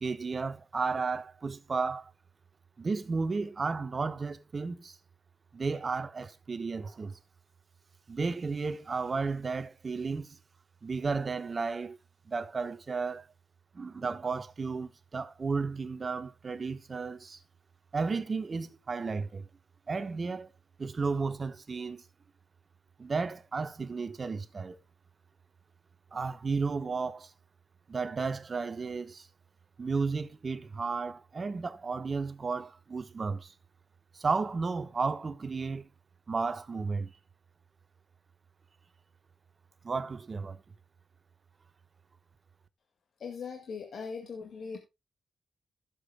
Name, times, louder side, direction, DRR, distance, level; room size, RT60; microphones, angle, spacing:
voice 1, 0.0-2.1 2.8-5.0 5.5-7.2 8.1-10.4 10.8-12.0 12.3-13.3 13.7-17.4 17.9-19.5 19.9-20.5 20.8-22.0 23.0-24.8 26.1-27.3 27.9-29.3 29.8-33.5 34.1-35.9 36.3-37.1 39.8-40.6, right 4 dB, 45° right, 1.1 m, -33 dB
voice 2, 43.2-44.8, left 5 dB, 70° left, 1.9 m, -40 dB
16.0 x 7.3 x 2.2 m
cardioid pair, 65°, 0 cm